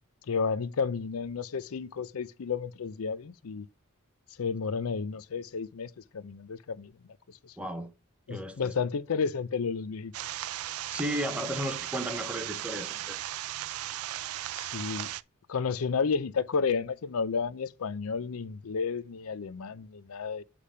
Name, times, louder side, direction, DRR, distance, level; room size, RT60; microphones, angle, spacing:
voice 1, 0.3-3.7 4.4-6.9 7.3-7.5 8.3-10.1 14.5-15.1 15.5-20.4, left 5 dB, 75° left, 0.5 m, -32 dB
voice 2, 7.6-7.9 8.3-8.7 10.9-13.2, equal, 5° right, 0.9 m, -34 dB
sound 1, 10.1-15.2, right 14 dB, 85° right, 0.4 m, -36 dB
8.3 x 3.4 x 5.5 m
head